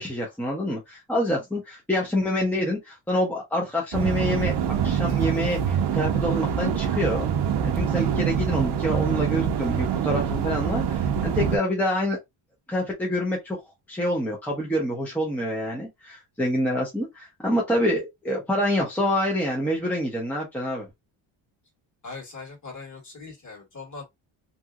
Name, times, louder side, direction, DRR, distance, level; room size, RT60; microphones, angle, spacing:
voice 1, 0.0-7.3 7.6-12.2 12.7-13.6 13.9-20.9, equal, 5° left, 0.8 m, -27 dB
sound 1, 3.9-11.6, right 8 dB, 55° right, 0.6 m, -25 dB
voice 2, 22.0-24.1, left 4 dB, 35° left, 1.9 m, -40 dB
2.9 x 2.6 x 2.3 m
cardioid pair, 120°, 48 cm